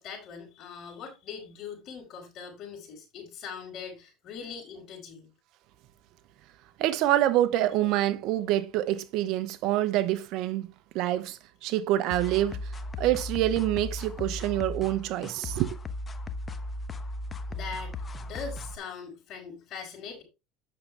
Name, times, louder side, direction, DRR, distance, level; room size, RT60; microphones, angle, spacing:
voice 1, 0.0-5.3 17.5-20.2, left 6 dB, 50° left, 5.0 m, -41 dB
voice 2, 6.8-10.7 10.9-12.6 13.0-15.8, right 14 dB, 65° right, 1.0 m, -26 dB
sound 1, 12.1-18.8, left 2 dB, 25° left, 0.9 m, -36 dB
8.9 x 6.7 x 3.4 m
supercardioid pair, 110°, 0 cm